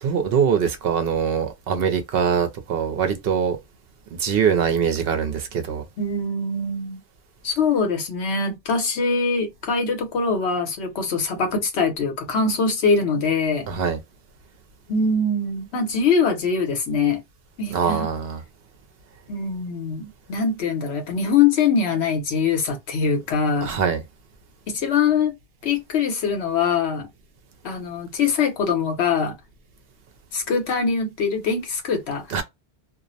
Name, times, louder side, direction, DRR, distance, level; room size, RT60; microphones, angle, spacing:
voice 1, 0.0-3.6 4.2-5.8 13.7-14.0 17.7-18.4 23.6-24.0 32.3-32.4, right 7 dB, 65° right, 0.7 m, -23 dB
voice 2, 6.0-7.0 7.4-13.7 14.9-17.2 17.6-18.1 19.3-23.7 24.7-25.3 25.6-27.1 27.6-29.4 30.3-32.2, left 5 dB, 75° left, 1.0 m, -23 dB
2.5 x 2.0 x 2.5 m
omnidirectional pair, 1.1 m